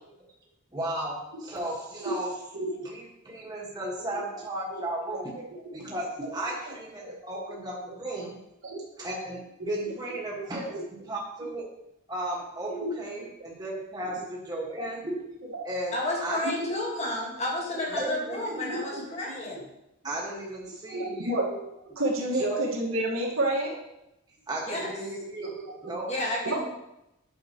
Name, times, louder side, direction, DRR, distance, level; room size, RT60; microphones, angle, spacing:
voice 1, 0.7-2.4 2.8-5.3 5.7-8.4 9.0-11.6 12.1-15.2 15.6-15.9 16.2-16.4 17.9-18.4 20.0-21.5 22.3-22.6 24.5-25.6 25.8-26.1, right 1 dB, 20° right, -4 dB, 1.6 m, -34 dB
voice 2, 15.9-19.7 24.7-24.9 26.1-26.6, left 1 dB, 30° left, -2 dB, 1.7 m, -31 dB
voice 3, 18.5-19.1 20.9-23.8 25.8-25.9 26.4-26.6, right 1 dB, 85° right, -2 dB, 1.7 m, -30 dB
9.0 x 6.6 x 3.0 m, 0.87 s
head